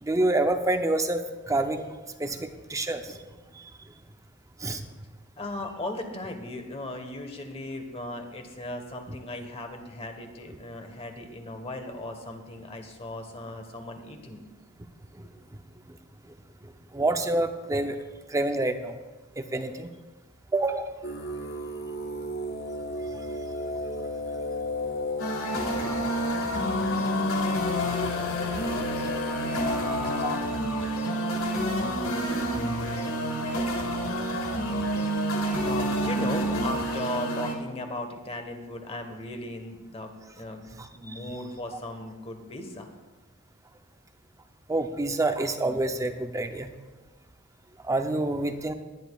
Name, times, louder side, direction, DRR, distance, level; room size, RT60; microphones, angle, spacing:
voice 1, 0.0-1.9 2.2-3.2 3.5-3.7 4.6-4.9 15.2-15.3 16.9-18.0 18.3-19.0 19.4-19.9 20.5-20.9 30.2-30.4 40.8-41.1 44.7-46.7 47.9-48.7, right 2 dB, 15° right, 7 dB, 0.6 m, -27 dB
voice 2, 5.4-14.4 29.7-30.6 35.6-40.7 40.9-42.9 46.6-46.7, left 1 dB, 25° left, 5 dB, 1.2 m, -37 dB
sound 1, 21.0-30.4, left 2 dB, 45° left, 0.7 m, -33 dB
sound 2, 25.2-37.5, equal, 65° left, 1.7 m, -28 dB
20.5 x 10.5 x 2.4 m, 1.2 s
head